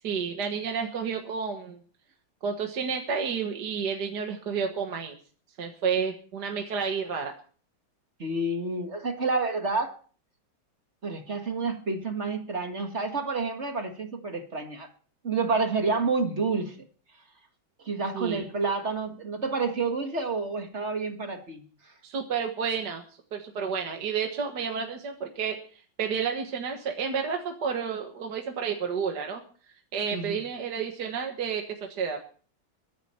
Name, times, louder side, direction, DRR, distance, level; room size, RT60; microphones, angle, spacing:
voice 1, 0.0-1.8 2.4-5.2 5.6-7.3 18.1-18.5 22.0-23.0 23.3-25.6 26.0-29.4 29.9-32.2, right 6 dB, 55° right, 3 dB, 2.0 m, -30 dB
voice 2, 8.2-9.9 11.0-14.9 15.2-16.7 17.9-21.6 30.1-30.4, right 3 dB, 35° right, 5 dB, 1.9 m, -29 dB
22.5 x 10.0 x 4.4 m, 0.42 s
omnidirectional pair, 2.2 m